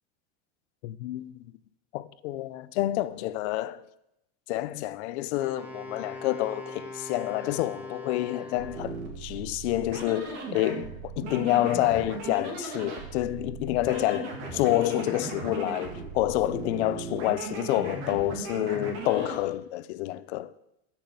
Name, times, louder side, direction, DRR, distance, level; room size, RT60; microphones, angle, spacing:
voice 1, 0.8-1.4 1.9-3.8 4.5-20.5, left 15 dB, 60° left, 0.6 m, -28 dB
Wind instrument woodwind instrument, 5.4-9.1, left 2 dB, 5° right, 1.2 m, -42 dB
sound 1, 8.5-19.4, right 4 dB, 45° right, 2.7 m, -37 dB
12.0 x 6.2 x 8.0 m
supercardioid pair, 170°, 37 cm